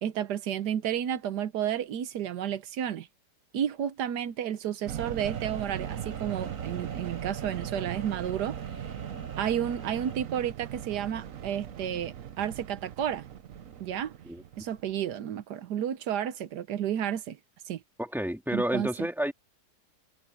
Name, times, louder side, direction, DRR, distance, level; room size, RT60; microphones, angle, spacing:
voice 1, 0.0-3.1 3.5-8.9 9.4-13.3 13.8-14.1 14.6-17.4 17.7-17.8 18.5-18.9, right 9 dB, 85° right, 1.4 m, -31 dB
sound 1, 4.9-15.1, right 10 dB, 60° right, 1.2 m, -39 dB
sound 2, 5.2-10.1, right 2 dB, 30° right, 8.0 m, -47 dB
voice 2, 18.0-19.3, equal, ahead, 3.9 m, -30 dB
omnidirectional pair, 1.7 m